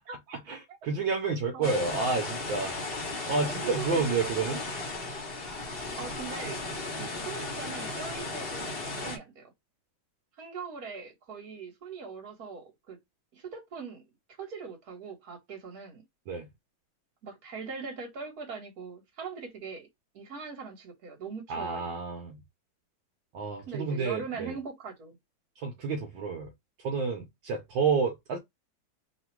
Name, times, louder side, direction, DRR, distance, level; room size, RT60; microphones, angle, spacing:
voice 1, 0.1-2.8 3.3-4.6 16.3-16.5 21.5-22.4 23.3-24.6 25.6-26.5 26.8-28.4, right 4 dB, 75° right, 1.6 m, -30 dB
sound 1, 1.6-9.2, left 2 dB, 35° left, 1.1 m, -35 dB
voice 2, 3.4-4.0 5.6-5.7 6.0-6.6 7.0-9.5 10.4-13.0 13.3-14.0 14.4-16.0 17.2-19.9 20.1-21.9 23.7-25.2, right 5 dB, 50° right, 1.9 m, -41 dB
3.8 x 2.4 x 4.5 m
omnidirectional pair, 2.1 m